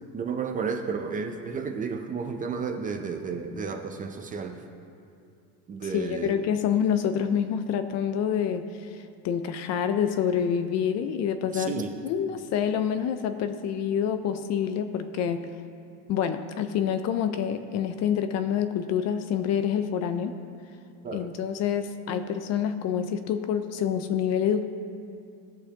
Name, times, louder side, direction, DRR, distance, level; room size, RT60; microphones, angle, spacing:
voice 1, 0.1-4.6 5.7-6.3 11.5-11.9 21.0-21.3, right 5 dB, 20° right, 5 dB, 0.5 m, -32 dB
voice 2, 5.8-8.9 9.2-15.5 16.1-20.3 21.1-24.6, left 8 dB, 40° left, 9 dB, 0.5 m, -27 dB
18.0 x 6.4 x 2.9 m, 2.5 s
supercardioid pair, 130°, 42 cm